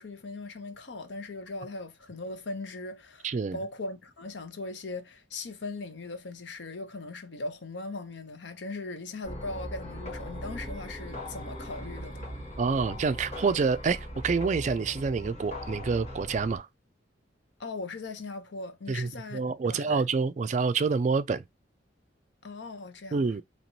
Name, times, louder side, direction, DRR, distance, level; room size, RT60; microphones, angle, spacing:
voice 1, 0.0-12.2 17.6-20.0 22.4-23.3, left 2 dB, 75° left, 0.8 m, -39 dB
voice 2, 3.2-3.6 12.6-16.7 18.9-21.4 23.1-23.4, right 4 dB, 40° right, 0.3 m, -27 dB
sound 1, 9.2-16.6, equal, 40° left, 1.9 m, -39 dB
4.1 x 2.9 x 3.0 m
head